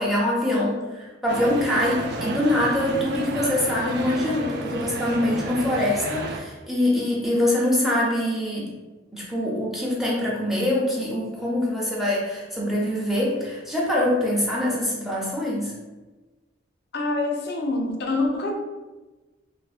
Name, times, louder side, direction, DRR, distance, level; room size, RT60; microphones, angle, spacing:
voice 1, 0.0-8.7 9.1-15.7, left 1 dB, ahead, -5 dB, 0.5 m, -24 dB
sound 1, 1.3-6.4, right 3 dB, 60° right, 0.3 m, -32 dB
voice 2, 16.9-18.5, left 2 dB, 60° left, 2 dB, 0.4 m, -25 dB
3.2 x 2.0 x 2.4 m, 1.2 s
head